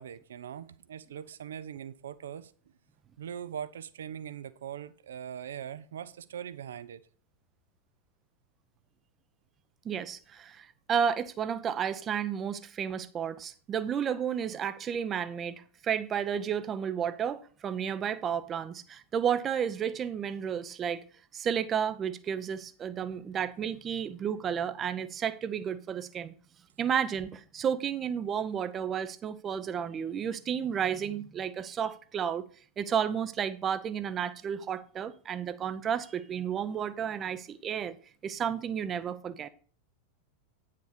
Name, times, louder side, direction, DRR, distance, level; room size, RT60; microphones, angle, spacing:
voice 1, 0.0-2.5 3.2-7.0, right 9 dB, 65° right, 0.6 m, -41 dB
voice 2, 9.8-21.0 21.3-26.3 26.8-32.4 32.8-37.9 38.2-39.5, right 8 dB, 25° right, 0.7 m, -32 dB
9.4 x 6.7 x 5.1 m
figure-of-eight pair, 90°, 0 cm